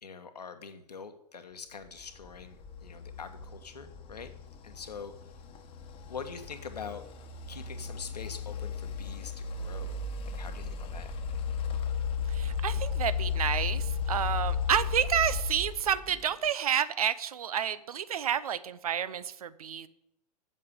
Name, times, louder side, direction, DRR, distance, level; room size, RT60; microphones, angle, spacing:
voice 1, 0.0-4.3 4.6-5.1 6.1-7.0 7.5-10.0 10.2-11.1, left 5 dB, 75° left, 8 dB, 1.3 m, -44 dB
sound 1, 2.0-16.5, left 6 dB, 25° left, 1.2 m, -35 dB
voice 2, 12.3-19.9, right 9 dB, 60° right, 16 dB, 0.7 m, -30 dB
7.6 x 7.5 x 8.4 m, 0.82 s
figure-of-eight pair, 105°, 21 cm